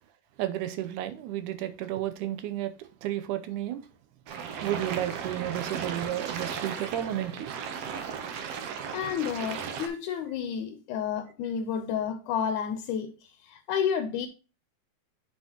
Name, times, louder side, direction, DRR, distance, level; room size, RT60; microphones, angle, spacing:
voice 1, 0.4-2.7 3.0-3.8 4.6-7.5, right 12 dB, 85° right, 2.3 m, -32 dB
sound 1, 4.3-9.9, right 7 dB, 65° right, 1.8 m, -36 dB
voice 2, 8.9-14.3, left 8 dB, 85° left, 2.2 m, -31 dB
8.0 x 5.6 x 2.9 m
omnidirectional pair, 3.5 m